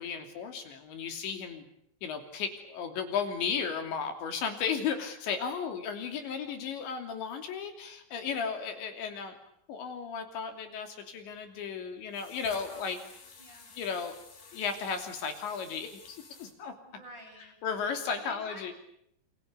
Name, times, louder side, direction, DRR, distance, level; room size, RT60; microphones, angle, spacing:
voice 1, 0.0-1.7 2.0-9.4 9.7-13.0 13.8-14.2 14.5-16.7 17.6-18.7, left 6 dB, 70° left, 6 dB, 5.1 m, -35 dB
voice 2, 6.1-6.5 12.7-13.1 13.4-13.7 16.8-17.6 18.1-18.7, equal, 20° right, 3 dB, 8.4 m, -50 dB
sound 1, 12.1-16.5, left 5 dB, 50° left, 5.6 m, -53 dB
28.5 x 28.5 x 6.8 m, 0.73 s
omnidirectional pair, 5.4 m